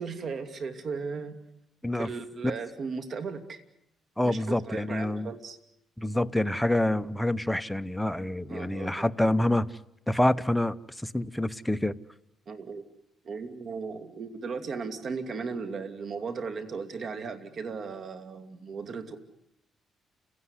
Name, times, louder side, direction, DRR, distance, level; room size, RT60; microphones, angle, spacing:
voice 1, 0.0-1.4 1.9-3.6 4.2-5.6 8.5-9.0 12.5-12.8 13.2-19.2, right 5 dB, 55° right, 9 dB, 2.7 m, -36 dB
voice 2, 4.2-5.3 6.0-9.8 10.1-11.9, left 1 dB, 5° left, 12 dB, 1.0 m, -27 dB
30.0 x 17.5 x 9.9 m, 0.81 s
cardioid pair, 90°, 0 cm